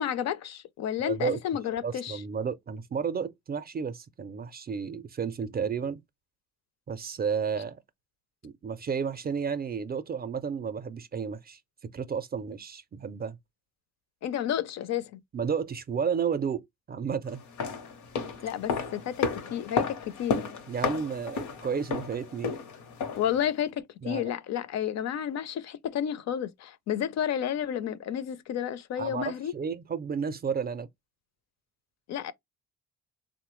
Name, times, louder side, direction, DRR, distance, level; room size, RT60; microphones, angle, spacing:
voice 1, 0.0-2.2 14.2-15.2 18.4-20.4 23.1-29.5 32.1-32.3, left 9 dB, 60° left, 0.5 m, -31 dB
voice 2, 1.0-1.4 1.8-6.0 6.9-7.8 8.4-11.6 11.9-13.4 15.3-17.4 20.7-22.5 24.0-24.3 29.0-30.9, right 6 dB, 30° right, 0.4 m, -32 dB
sound 1, 17.4-23.4 23.6-23.7, left 5 dB, 85° left, 0.8 m, -32 dB
3.3 x 2.1 x 3.0 m
cardioid pair, 90°, 30 cm